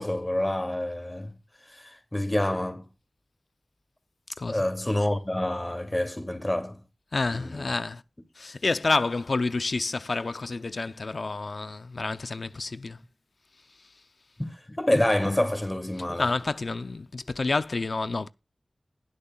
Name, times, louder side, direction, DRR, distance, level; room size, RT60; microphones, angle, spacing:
voice 1, 0.0-1.3 1.7-2.9 4.5-6.8 7.3-7.8 14.4-16.3, left 1 dB, 20° left, 2.6 m, -28 dB
voice 2, 4.4-4.7 7.1-8.0 8.4-13.0 16.2-18.3, left 3 dB, 70° left, 0.6 m, -29 dB
20.5 x 6.9 x 2.4 m
wide cardioid pair, 55°, 0 cm